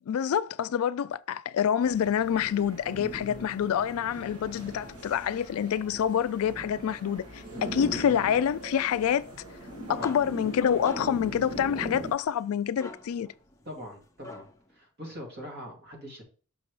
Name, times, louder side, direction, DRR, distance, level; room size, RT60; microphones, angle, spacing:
voice 1, 0.1-9.2 9.9-13.3, left 8 dB, 70° left, 0.3 m, -27 dB
sound 1, 1.8-12.1, equal, 80° right, 1.7 m, -40 dB
sound 2, 9.7-14.7, left 2 dB, 15° left, 0.6 m, -48 dB
voice 2, 13.7-16.2, equal, 45° right, 2.5 m, -42 dB
6.0 x 5.9 x 3.1 m
head